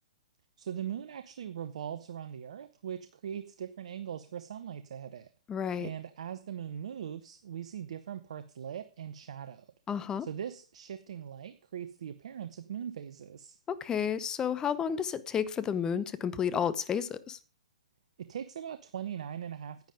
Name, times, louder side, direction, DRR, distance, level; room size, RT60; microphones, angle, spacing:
voice 1, 0.6-5.3 5.8-9.7 10.2-13.6 18.2-19.9, right 9 dB, 60° right, 12 dB, 0.9 m, -40 dB
voice 2, 5.5-5.9 9.9-10.3 13.7-17.4, left 7 dB, 15° left, 14 dB, 1.0 m, -31 dB
10.5 x 9.4 x 5.1 m, 0.36 s
figure-of-eight pair, 120°, 4 cm